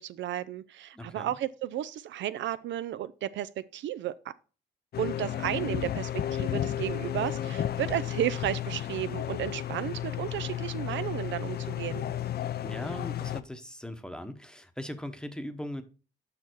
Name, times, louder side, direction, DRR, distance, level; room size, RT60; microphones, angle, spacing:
voice 1, 0.0-4.3 5.0-12.0, right 12 dB, 70° right, 0.4 m, -33 dB
voice 2, 0.9-1.3 12.6-15.8, left 1 dB, 5° left, 0.9 m, -39 dB
sound 1, 4.9-13.4, left 11 dB, 55° left, 0.5 m, -33 dB
6.8 x 5.6 x 4.5 m
cardioid pair, 90°, 20 cm